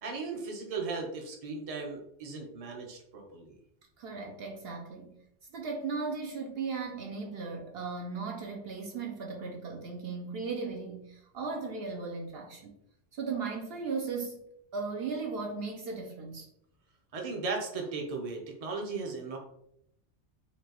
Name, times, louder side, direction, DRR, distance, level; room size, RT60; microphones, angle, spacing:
voice 1, 0.0-3.5 17.1-19.4, right 4 dB, 35° right, 1 dB, 0.7 m, -37 dB
voice 2, 4.0-5.2 5.5-12.7 13.1-14.4 14.7-16.5, right 4 dB, 65° right, 1 dB, 0.8 m, -37 dB
4.5 x 2.8 x 2.9 m, 0.76 s
omnidirectional pair, 1.2 m